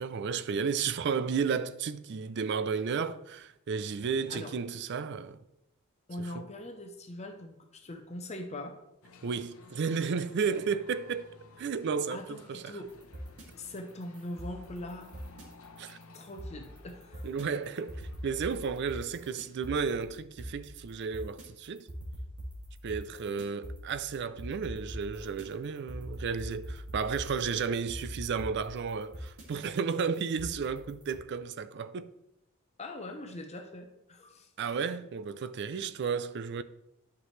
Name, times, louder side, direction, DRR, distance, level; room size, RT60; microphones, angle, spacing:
voice 1, 0.0-5.4 6.2-6.5 9.2-11.3 11.6-12.8 15.8-16.0 17.2-21.9 22.8-32.1 34.6-36.6, right 5 dB, 50° right, 0.4 m, -33 dB
voice 2, 6.1-8.8 12.1-12.9 13.6-15.1 16.1-17.3 32.8-34.5 35.7-35.8, left 1 dB, 30° left, 0.7 m, -42 dB
sound 1, 9.0-19.5, left 3 dB, 70° left, 0.8 m, -56 dB
sound 2, 12.8-31.2, equal, 85° right, 2.2 m, -43 dB
11.0 x 6.0 x 3.2 m
head